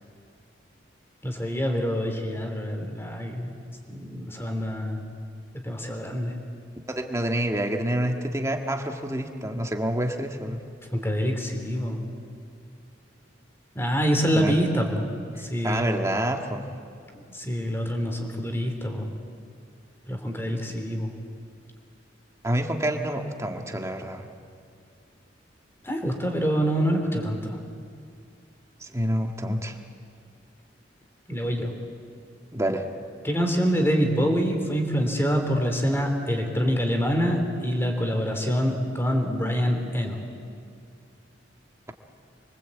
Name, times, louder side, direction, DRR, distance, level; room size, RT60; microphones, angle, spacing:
voice 1, 1.2-3.6 3.9-5.0 5.6-6.4 10.9-12.0 13.8-15.1 15.4-15.9 17.3-19.1 20.1-21.1 25.8-27.6 31.3-31.7 33.2-40.2, equal, 10° left, 4 dB, 3.4 m, -26 dB
voice 2, 6.9-10.6 14.3-14.6 15.6-16.6 22.4-24.3 28.8-29.8 32.5-32.8, right 1 dB, 15° right, 4 dB, 1.8 m, -27 dB
27.5 x 24.5 x 8.5 m, 2.3 s
head